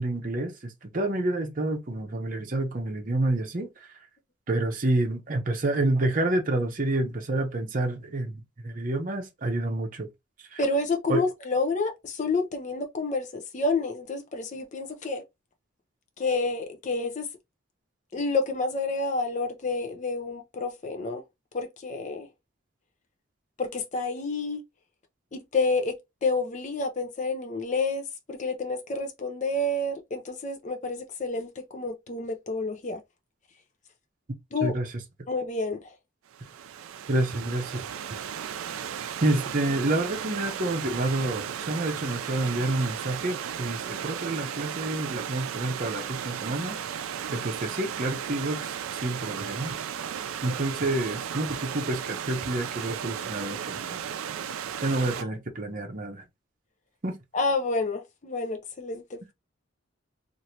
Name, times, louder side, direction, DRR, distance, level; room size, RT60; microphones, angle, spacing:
voice 1, 0.0-3.7 4.5-10.1 10.5-10.6 11.1-11.2 34.6-34.9 37.1-37.9 39.2-46.8 47.3-48.7 49.0-49.7 50.4-54.0 54.8-56.2 57.0-57.2, right 2 dB, 40° right, 0.7 m, -28 dB
voice 2, 10.6-15.2 16.2-17.3 18.1-21.2 21.5-22.3 23.6-24.6 25.3-33.0 34.5-34.8 35.3-35.9 50.4-50.5 57.3-59.3, left 3 dB, 35° left, 0.5 m, -29 dB
Stream / Liquid, 36.3-55.2, right 8 dB, 90° right, 0.4 m, -35 dB
3.0 x 2.5 x 2.7 m
head